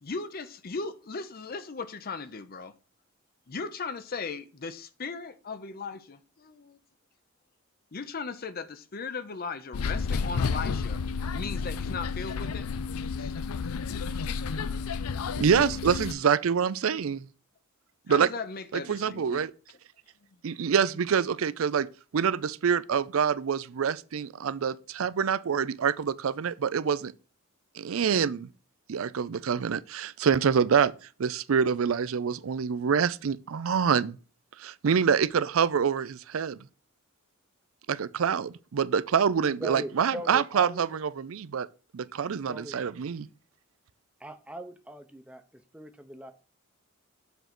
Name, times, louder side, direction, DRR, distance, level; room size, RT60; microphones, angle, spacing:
voice 1, 0.0-2.7 3.5-6.8 7.9-11.0 11.3-12.7 13.2-13.3 14.1-14.2 18.1-19.5, left 4 dB, 45° left, 0.6 m, -37 dB
sound 1, 9.7-16.1, left 5 dB, 85° left, 0.5 m, -31 dB
voice 2, 15.4-17.3 18.1-18.3 18.9-19.5 20.4-21.9 22.1-27.1 27.8-28.5 28.9-30.9 31.2-34.2 34.6-36.6 37.9-41.7 41.9-43.3, right 7 dB, 70° right, 0.4 m, -26 dB
voice 3, 39.5-40.9 42.5-42.8 44.2-46.3, right 1 dB, 5° right, 0.7 m, -40 dB
7.1 x 3.9 x 5.9 m
head